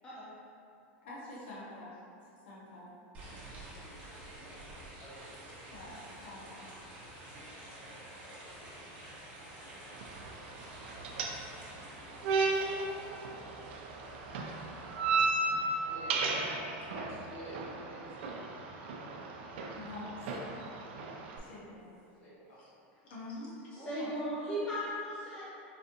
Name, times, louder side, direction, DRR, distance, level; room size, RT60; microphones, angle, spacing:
voice 1, 1.0-1.9 2.4-2.9 5.7-5.9 6.2-6.7 19.7-20.7 21.4-21.8 22.5-22.7 23.0-23.5, left 2 dB, 75° left, -7 dB, 0.9 m, -46 dB
sound 1, 3.1-15.0, right 1 dB, 25° right, 0.9 m, -49 dB
voice 2, 4.3-5.7 15.9-16.3 16.9-18.4 18.9-19.3 22.2-22.5 23.7-24.6, right 1 dB, 35° left, -10 dB, 1.3 m, -50 dB
sound 2, 9.9-21.4, right 3 dB, 75° right, 0.4 m, -35 dB
voice 3, 23.7-25.4, equal, 15° left, -9 dB, 0.5 m, -37 dB
4.1 x 2.6 x 2.6 m, 2.5 s
supercardioid pair, 165°, 6 cm